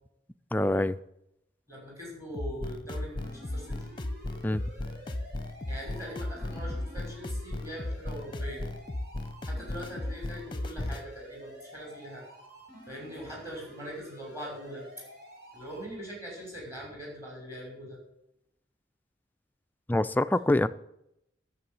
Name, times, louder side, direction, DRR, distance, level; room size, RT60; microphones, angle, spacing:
voice 1, 0.5-1.0 4.4-4.6 19.9-20.7, left 1 dB, 10° left, 11 dB, 0.4 m, -25 dB
voice 2, 1.7-3.7 5.7-8.7 9.5-12.2 12.9-14.9 15.5-18.0, equal, 15° right, -3 dB, 5.6 m, -42 dB
sound 1, 2.3-11.1, left 1 dB, 25° left, 0.8 m, -36 dB
sound 2, 3.2-15.8, equal, 55° right, 4.5 m, -50 dB
11.5 x 7.0 x 9.2 m, 0.80 s
head